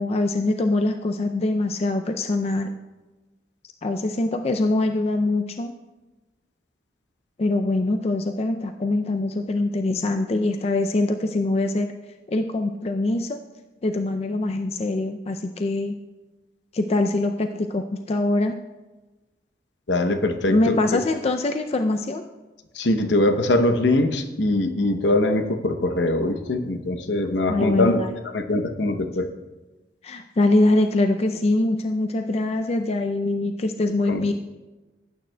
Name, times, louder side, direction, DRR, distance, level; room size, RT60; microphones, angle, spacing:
voice 1, 0.0-2.7 3.8-5.7 7.4-11.9 12.3-13.4 13.8-15.9 16.7-18.6 20.5-22.2 27.5-28.1 30.0-34.3, left 2 dB, 35° left, 6 dB, 0.4 m, -23 dB
voice 2, 19.9-21.0 22.8-28.0 28.3-29.3 34.1-34.2, left 2 dB, 85° left, 7 dB, 0.8 m, -22 dB
18.0 x 9.1 x 2.2 m, 1.1 s
head